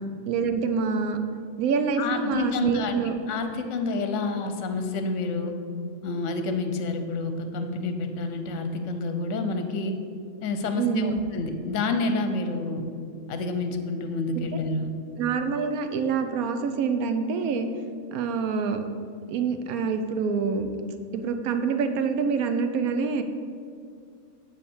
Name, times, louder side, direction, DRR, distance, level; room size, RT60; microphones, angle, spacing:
voice 1, 0.3-1.2 1.6-3.1 10.8-11.2 14.3-14.4 15.2-17.7 18.1-18.8 19.3-20.7 21.1-23.2, right 5 dB, 80° right, 8 dB, 1.1 m, -26 dB
voice 2, 2.0-5.5 6.0-9.9 10.4-12.8 13.3-14.9, left 3 dB, 60° left, 7 dB, 1.0 m, -29 dB
9.6 x 3.6 x 7.1 m, 2.3 s
omnidirectional pair, 1.5 m